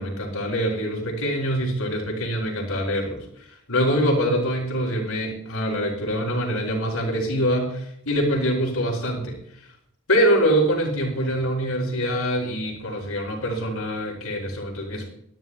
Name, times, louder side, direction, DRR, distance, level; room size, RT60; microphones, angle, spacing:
voice 1, 0.0-9.4 10.1-15.1, equal, 85° left, 1 dB, 5.3 m, -24 dB
23.5 x 12.5 x 2.2 m, 0.76 s
head